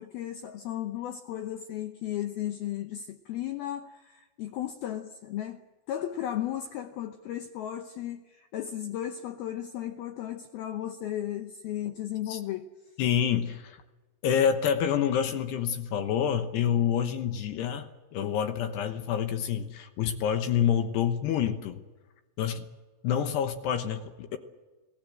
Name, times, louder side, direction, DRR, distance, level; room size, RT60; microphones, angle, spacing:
voice 1, 0.0-5.6 5.9-12.7, left 11 dB, 90° left, 2.1 m, -35 dB
voice 2, 13.0-13.8 14.2-21.8 22.4-22.7 23.0-24.4, left 8 dB, 70° left, 2.8 m, -27 dB
28.0 x 19.5 x 7.7 m
omnidirectional pair, 5.8 m